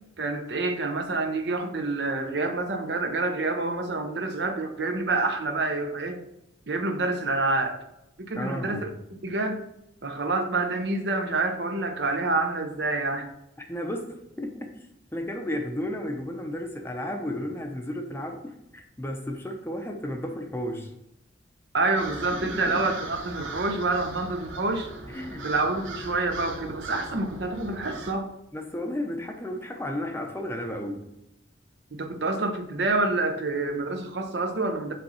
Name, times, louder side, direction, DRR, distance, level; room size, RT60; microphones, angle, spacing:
voice 1, 0.2-6.2 6.7-7.8 8.2-8.9 9.2-9.6 10.0-13.3 21.7-24.9 25.4-28.3 32.0-34.9, right 3 dB, 60° right, 6 dB, 0.7 m, -27 dB
voice 2, 8.4-8.9 13.7-20.9 22.3-22.8 25.1-25.5 28.5-31.1, left 1 dB, 10° left, 3 dB, 0.6 m, -33 dB
sound 1, 22.0-28.1, right 2 dB, 85° right, 1.0 m, -39 dB
5.3 x 3.9 x 5.6 m, 0.86 s
head